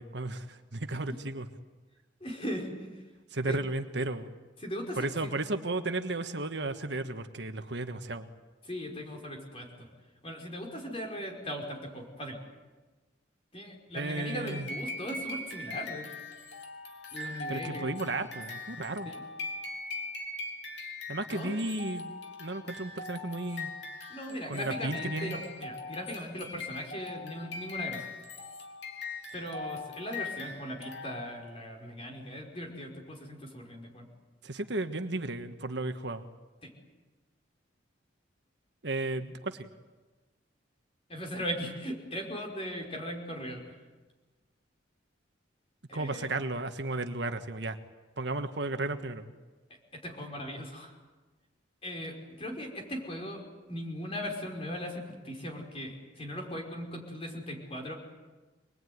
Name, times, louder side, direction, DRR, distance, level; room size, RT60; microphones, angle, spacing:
voice 1, 0.0-1.5 3.3-4.3 5.0-8.3 13.9-14.7 17.5-19.1 21.1-23.7 24.5-25.4 34.4-36.3 38.8-39.7 45.9-47.8 48.2-49.3, right 2 dB, 60° right, 7 dB, 1.4 m, -34 dB
voice 2, 2.2-3.0 3.4-3.6 4.6-5.3 8.7-9.9 10.2-12.4 13.5-16.1 17.1-17.9 19.1-19.2 21.3-21.6 24.1-28.1 29.3-34.1 36.6-36.7 41.1-43.6 45.9-46.3 49.9-50.9 51.8-53.4 53.7-57.9, equal, 30° left, 2 dB, 5.4 m, -38 dB
sound 1, 14.5-31.5, left 3 dB, 60° left, 3.6 m, -41 dB
26.0 x 21.0 x 9.5 m, 1.3 s
head